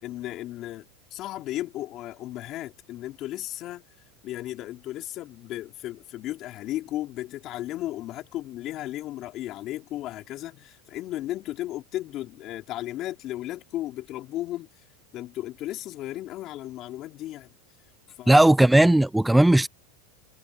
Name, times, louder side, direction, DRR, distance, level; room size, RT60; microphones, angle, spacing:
voice 1, 0.0-3.8 4.2-14.7 15.1-17.5 18.2-18.4, left 14 dB, 45° left, 4.2 m, -35 dB
voice 2, 18.3-19.7, right 1 dB, 5° right, 0.6 m, -17 dB
hypercardioid pair, 110°, 0 cm